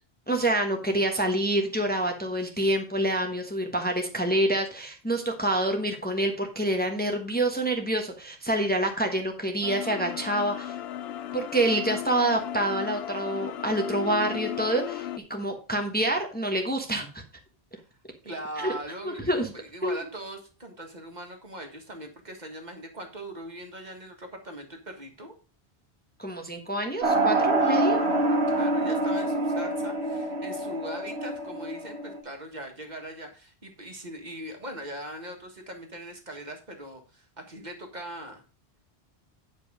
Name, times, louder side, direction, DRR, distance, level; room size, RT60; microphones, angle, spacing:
voice 1, 0.3-10.7 11.3-17.2 18.6-18.7 19.0-19.5 19.8-20.0 26.2-28.0, right 1 dB, 10° left, 3 dB, 1.1 m, -27 dB
sound 1, 9.6-15.2, left 11 dB, 80° left, 0.9 m, -35 dB
voice 2, 18.2-25.3 27.6-38.4, right 1 dB, 45° right, 4 dB, 1.8 m, -40 dB
sound 2, 27.0-32.2, right 2 dB, 90° right, 1.7 m, -26 dB
9.5 x 5.3 x 4.9 m, 0.35 s
omnidirectional pair, 1.1 m